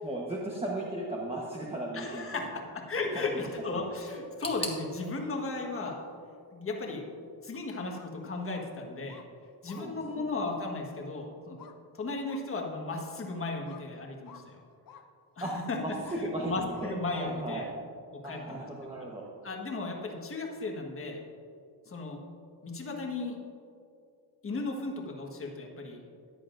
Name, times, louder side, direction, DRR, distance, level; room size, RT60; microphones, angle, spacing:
voice 1, 0.0-2.6 3.1-3.4 3.7-3.8 9.8-10.2 15.4-15.5 15.8-17.7 18.2-19.2, right 1 dB, 15° right, -4 dB, 1.1 m, -36 dB
voice 2, 1.9-2.5 2.9-6.0 6.5-7.1 7.4-9.2 9.6-11.6 11.9-14.5 15.4-15.8 16.4-17.7 18.1-18.6 19.4-21.2 21.9-22.2 22.6-23.4 24.4-26.0, left 3 dB, 35° left, 1 dB, 1.5 m, -35 dB
sound 1, 4.4-7.3 7.5-8.4 8.6-8.7 9.6-9.7, left 2 dB, 15° left, 1.2 m, -43 dB
sound 2, 7.9-8.1 8.5-8.7 9.1-9.3 9.6-9.8 10.4-10.6 11.6-11.8 12.3-12.4 12.9-13.0 13.6-13.9 14.3-14.4 14.9-15.0 15.4-15.6 16.0-16.2 16.7-16.9 17.5-17.6, left 8 dB, 55° left, 0.8 m, -51 dB
14.5 x 9.6 x 2.6 m, 2.5 s
cardioid pair, 120°, 40 cm